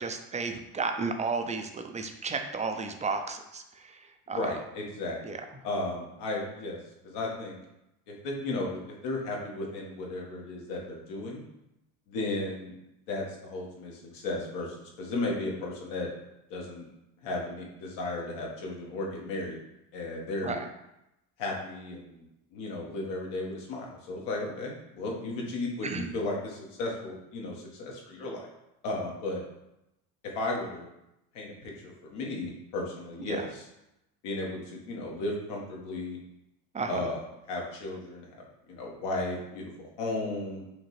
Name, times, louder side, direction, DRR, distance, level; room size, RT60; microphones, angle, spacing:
voice 1, 0.0-4.0 4.3-4.5 5.2-5.4 20.4-20.7 25.8-26.0 33.2-33.5 36.7-37.1, right 4 dB, 20° right, 6 dB, 0.3 m, -33 dB
voice 2, 4.3-6.8 7.0-7.6 8.1-11.5 12.1-12.7 13.1-16.1 16.5-16.8 17.2-19.6 19.9-20.6 21.4-22.2 22.5-28.5 28.8-29.4 30.3-30.9 31.3-33.6 34.2-36.2 36.9-40.6, left 2 dB, 75° left, -2 dB, 1.3 m, -35 dB
4.9 x 2.8 x 3.1 m, 0.87 s
supercardioid pair, 90°, 43 cm